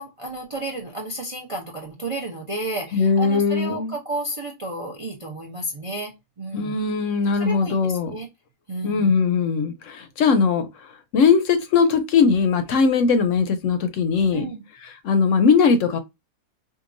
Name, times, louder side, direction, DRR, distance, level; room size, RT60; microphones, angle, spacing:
voice 1, 0.0-6.1 6.4-6.8 7.4-8.3 8.7-9.1 14.3-14.6, right 1 dB, 35° right, 0.5 m, -32 dB
voice 2, 2.9-3.9 6.5-8.2 8.8-10.7 11.1-14.5 14.8-16.0, left 5 dB, 65° left, 0.9 m, -20 dB
4.6 x 2.6 x 2.5 m
omnidirectional pair, 1.6 m